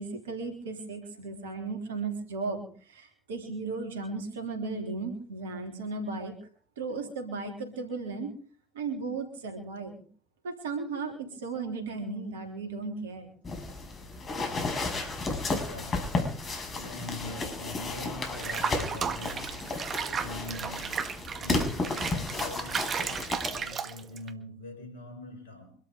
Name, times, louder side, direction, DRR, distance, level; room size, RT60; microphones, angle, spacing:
voice 1, 0.0-6.3 6.8-8.3 8.7-10.0 10.4-13.3, right 4 dB, 85° right, 3.6 m, -35 dB
sound 1, 13.4-23.6, left 3 dB, 40° left, 6.4 m, -33 dB
voice 2, 14.3-25.8, left 2 dB, 80° left, 6.2 m, -44 dB
Water / Bathtub (filling or washing), 18.4-24.3, right 6 dB, 45° right, 1.9 m, -34 dB
25.5 x 13.0 x 3.6 m
hypercardioid pair, 55°, 0 cm